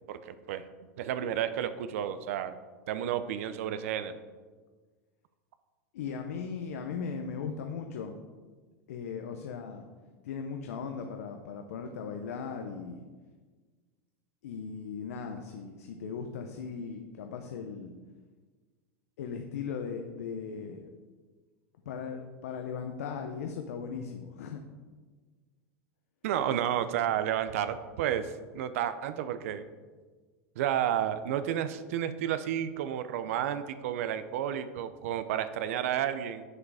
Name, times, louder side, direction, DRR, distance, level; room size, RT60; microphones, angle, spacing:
voice 1, 0.1-0.6 1.0-2.6 2.9-4.1 26.2-29.6 30.6-36.4, right 10 dB, 70° right, 11 dB, 0.6 m, -31 dB
voice 2, 5.9-8.2 8.9-9.8 10.2-13.0 14.4-17.9 19.2-20.9 21.8-24.6, left 6 dB, 85° left, 4 dB, 0.8 m, -38 dB
7.4 x 6.6 x 4.9 m, 1.4 s
supercardioid pair, 150°, 8 cm